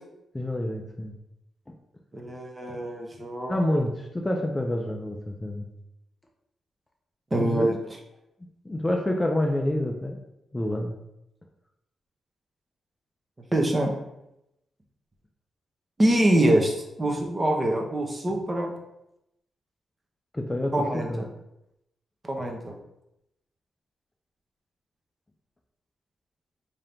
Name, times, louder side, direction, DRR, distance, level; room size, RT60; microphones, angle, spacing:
voice 1, 0.3-1.1 1.7-1.8 3.5-5.7 7.3-7.8 8.6-10.2 10.5-11.0 20.3-21.2, left 1 dB, 15° left, 2 dB, 0.4 m, -28 dB
voice 2, 2.1-3.5 7.3-7.7 13.5-13.9 16.0-18.7 20.7-21.3 22.2-22.8, right 1 dB, 25° right, 2 dB, 0.8 m, -24 dB
3.7 x 2.8 x 3.4 m, 0.85 s
cardioid pair, 85°, 0 cm